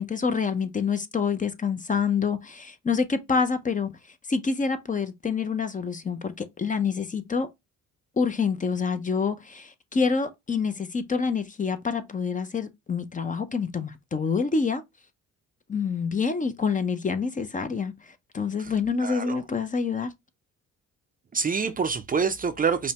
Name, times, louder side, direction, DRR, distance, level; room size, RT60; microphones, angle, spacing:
voice 1, 0.0-3.9 4.3-7.5 8.2-14.8 15.7-20.1, left 5 dB, 25° left, 0.6 m, -27 dB
voice 2, 19.0-19.4 21.3-22.9, right 5 dB, 30° right, 0.5 m, -26 dB
5.2 x 2.2 x 2.8 m
cardioid pair, 90°, 30 cm